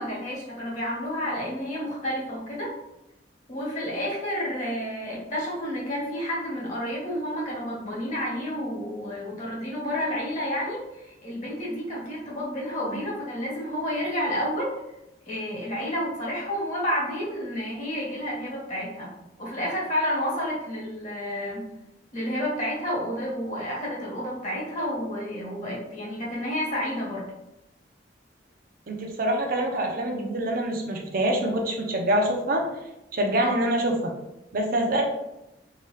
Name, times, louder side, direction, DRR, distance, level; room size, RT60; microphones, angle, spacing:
voice 1, 0.0-2.7 3.5-10.8 11.2-14.7 15.3-19.1 19.4-21.7 22.1-27.2 33.4-33.6, equal, 45° left, -5 dB, 1.1 m, -30 dB
voice 2, 28.9-32.6 33.1-34.1 34.5-35.0, right 1 dB, 55° right, 2 dB, 0.6 m, -25 dB
2.9 x 2.3 x 3.2 m, 0.89 s
head